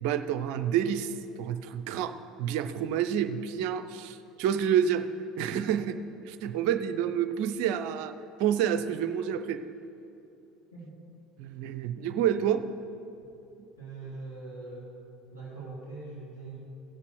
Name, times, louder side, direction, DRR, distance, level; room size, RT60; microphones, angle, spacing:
voice 1, 0.0-5.1 5.4-5.9 6.4-8.1 8.4-9.6 11.4-12.6, right 9 dB, 60° right, 10 dB, 0.5 m, -28 dB
voice 2, 13.8-14.9 15.3-16.6, right 3 dB, 85° left, -11 dB, 2.8 m, -42 dB
16.5 x 6.8 x 4.6 m, 2.8 s
figure-of-eight pair, 65°, 0 cm